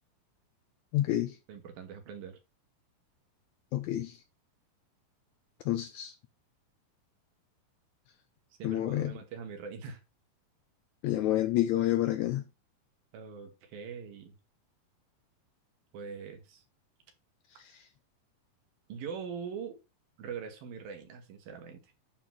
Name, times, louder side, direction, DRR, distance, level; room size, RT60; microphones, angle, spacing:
voice 1, 0.9-1.4 3.7-4.2 5.7-6.1 8.6-9.1 11.0-12.4 17.6-17.7, left 13 dB, 85° left, 1.7 m, -29 dB
voice 2, 1.5-2.4 8.6-10.0 13.1-14.4 15.9-16.6 18.9-19.8 20.2-21.8, right 6 dB, 85° right, 3.5 m, -42 dB
9.0 x 4.2 x 6.0 m
omnidirectional pair, 4.1 m